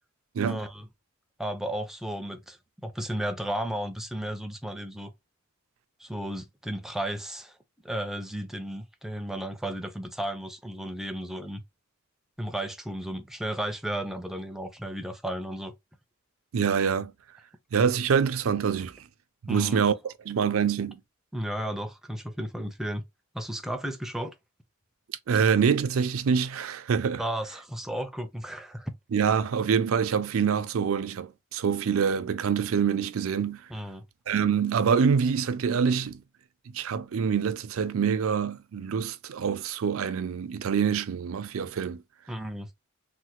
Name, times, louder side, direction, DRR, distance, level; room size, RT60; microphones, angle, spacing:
voice 1, 0.4-0.9 1.4-5.1 6.0-7.6 7.8-11.6 12.4-15.7 19.5-19.8 21.3-23.0 23.3-24.4 27.2-28.9 33.7-34.0 42.3-42.7, right 1 dB, ahead, 0.4 m, -34 dB
voice 2, 16.5-17.1 17.7-19.0 19.5-19.9 20.3-21.0 25.3-27.2 29.1-33.6 34.3-36.2 36.7-42.0, right 6 dB, 75° right, 0.4 m, -25 dB
3.2 x 2.1 x 2.9 m
head